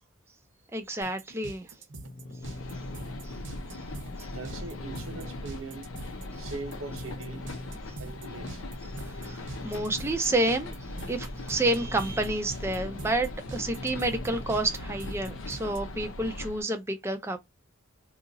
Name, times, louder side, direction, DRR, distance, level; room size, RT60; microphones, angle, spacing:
voice 1, 0.7-1.7 3.2-3.3 4.2-4.3 9.1-10.7 11.1-17.4, right 2 dB, 10° right, 0.4 m, -29 dB
sound 1, 1.0-15.8, right 2 dB, 60° right, 0.8 m, -44 dB
sound 2, 1.9-15.8, left 1 dB, 40° left, 0.5 m, -45 dB
sound 3, 2.4-16.6, left 2 dB, 85° left, 0.7 m, -40 dB
voice 2, 4.3-5.9 6.4-7.4 8.0-8.6, right 3 dB, 85° right, 1.0 m, -41 dB
2.8 x 2.5 x 3.9 m
head